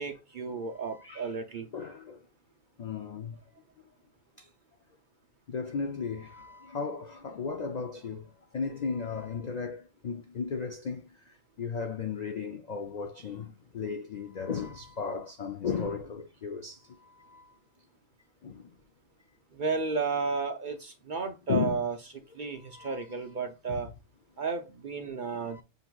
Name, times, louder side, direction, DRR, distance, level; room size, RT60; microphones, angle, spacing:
voice 1, 0.0-1.7 19.5-22.0 22.3-23.9 24.4-25.6, right 4 dB, 50° right, 0.6 m, -33 dB
voice 2, 0.9-1.3 1.7-2.2 2.8-3.4 4.4-4.5 5.5-17.5 18.4-18.7 21.5-21.8 22.7-23.1 23.7-23.8 25.2-25.6, left 5 dB, 75° left, 0.3 m, -35 dB
7.9 x 2.8 x 2.3 m
omnidirectional pair, 1.4 m